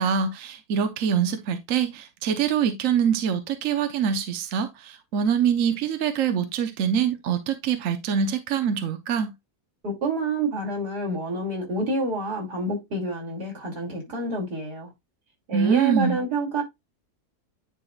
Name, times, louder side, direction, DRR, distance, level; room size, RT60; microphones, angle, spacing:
voice 1, 0.0-9.3 15.5-16.2, right 7 dB, 60° right, 1.2 m, -24 dB
voice 2, 9.8-14.9 15.5-16.6, right 2 dB, 90° right, 3.4 m, -28 dB
9.8 x 4.7 x 2.4 m
omnidirectional pair, 1.7 m